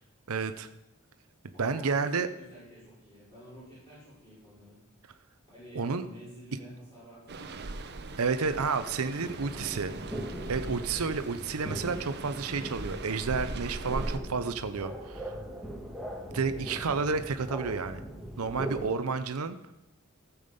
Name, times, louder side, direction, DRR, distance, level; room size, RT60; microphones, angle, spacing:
voice 1, 0.3-0.7 1.6-2.3 5.7-6.1 8.2-9.9 10.5-15.3 16.3-18.0 18.4-19.6, right 4 dB, 85° right, 9 dB, 0.7 m, -30 dB
voice 2, 1.5-4.8 5.5-7.6, equal, 20° left, -10 dB, 5.4 m, -50 dB
sound 1, 7.3-14.2, right 2 dB, 50° right, 0.8 m, -40 dB
sound 2, 9.2-18.9, equal, ahead, 1.5 m, -41 dB
14.5 x 7.2 x 5.3 m, 0.91 s
head